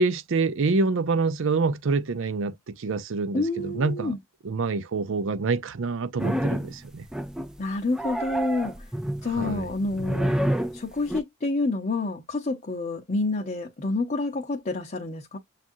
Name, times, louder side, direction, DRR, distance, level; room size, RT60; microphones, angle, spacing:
voice 1, 0.0-4.1 4.4-7.1 9.4-9.7, right 3 dB, 60° right, 0.5 m, -26 dB
voice 2, 3.3-4.2 7.6-8.7 9.2-10.3 10.7-15.4, left 2 dB, 35° left, 0.7 m, -28 dB
sound 1, 6.2-6.8 7.1-7.6 7.9-11.2, right 1 dB, 5° right, 0.3 m, -28 dB
7.2 x 2.5 x 2.6 m
head